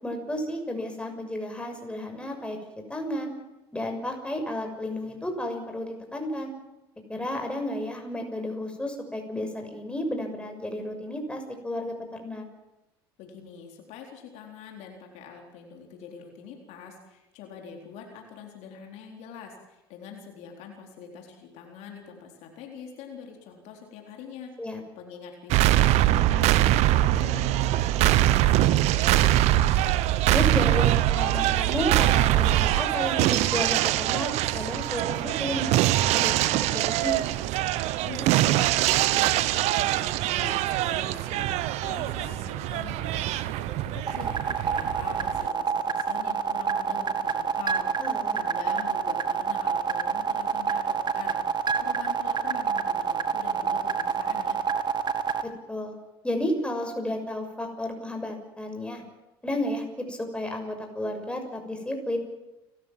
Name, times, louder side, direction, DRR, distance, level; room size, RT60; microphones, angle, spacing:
voice 1, 0.0-2.6 2.9-3.3 3.7-6.5 7.1-12.4 24.6-24.8 30.3-37.3 48.0-48.4 55.4-55.9 56.2-59.0 59.4-62.2, left 1 dB, 10° left, 4 dB, 6.6 m, -32 dB
voice 2, 13.2-30.1 38.0-54.6, left 6 dB, 65° left, 2 dB, 4.0 m, -44 dB
sound 1, 25.5-45.5, right 14 dB, 60° right, 1.0 m, -23 dB
sound 2, 44.1-55.4, right 6 dB, 35° right, 2.0 m, -27 dB
29.5 x 14.0 x 7.6 m, 1.0 s
hypercardioid pair, 65°, 13 cm